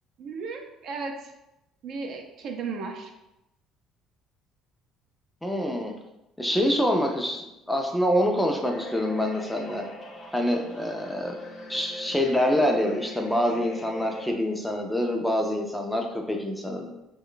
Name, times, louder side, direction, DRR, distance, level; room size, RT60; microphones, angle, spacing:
voice 1, 0.2-1.3 1.8-3.1, right 4 dB, 55° right, 3 dB, 0.4 m, -35 dB
voice 2, 5.4-5.9 6.4-9.9 10.3-11.4 11.7-16.9, equal, 5° left, 2 dB, 0.4 m, -26 dB
sound 1, 8.6-14.3, left 1 dB, 40° left, 0.8 m, -41 dB
3.0 x 2.2 x 3.8 m, 0.92 s
cardioid pair, 110°, 0 cm